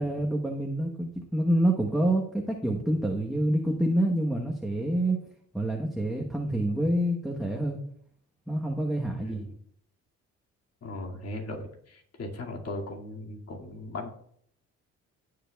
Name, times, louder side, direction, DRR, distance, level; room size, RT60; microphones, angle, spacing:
voice 1, 0.0-5.2 5.5-7.8 8.5-9.5, right 1 dB, ahead, -1 dB, 1.1 m, -27 dB
voice 2, 9.2-9.6 10.8-14.1, left 1 dB, 55° left, 1 dB, 2.3 m, -38 dB
17.0 x 6.7 x 2.3 m, 0.66 s
cardioid pair, 90°, 30 cm